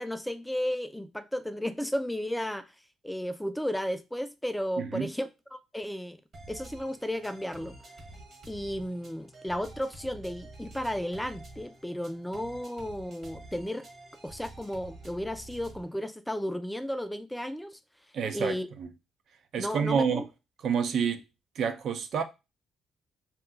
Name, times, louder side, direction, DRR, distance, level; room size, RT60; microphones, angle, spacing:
voice 1, 0.0-2.7 3.0-6.2 6.5-7.7 8.5-13.9 14.2-17.8 18.3-18.7 19.6-20.2, equal, 5° left, 0.3 m, -34 dB
voice 2, 4.8-5.1 18.1-18.9 19.5-20.2 20.6-21.2 21.6-22.2, right 6 dB, 65° right, 0.5 m, -28 dB
Creep Loop, 6.3-15.9, right 2 dB, 50° right, 1.2 m, -49 dB
2.8 x 2.2 x 3.5 m
cardioid pair, 90°, 0 cm